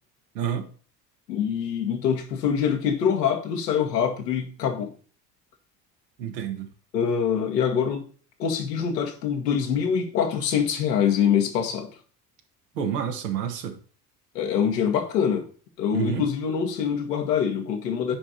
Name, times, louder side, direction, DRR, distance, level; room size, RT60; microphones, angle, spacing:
voice 1, 0.3-0.7 6.2-6.7 12.7-13.8 15.9-16.3, right 8 dB, 75° right, 1.7 m, -29 dB
voice 2, 1.3-4.9 6.9-8.1 8.4-11.9 14.4-15.5 15.8-18.2, left 7 dB, 80° left, 1.9 m, -24 dB
10.0 x 5.0 x 4.1 m
figure-of-eight pair, 60°, 49 cm